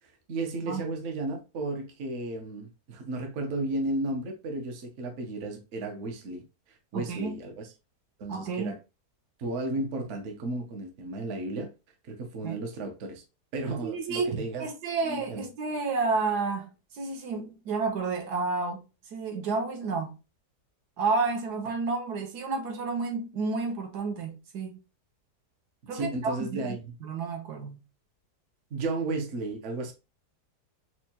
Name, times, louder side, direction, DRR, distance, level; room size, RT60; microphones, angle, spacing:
voice 1, 0.3-7.7 8.2-8.8 9.4-11.7 12.0-13.2 13.5-14.7 15.1-15.4 25.8-26.9 28.7-29.9, right 2 dB, 55° right, 0.9 m, -34 dB
voice 2, 6.9-7.4 8.3-8.7 12.4-12.6 13.8-20.1 21.0-24.8 25.9-27.8, right 4 dB, 75° right, 1.3 m, -31 dB
4.4 x 2.2 x 2.8 m
omnidirectional pair, 1.8 m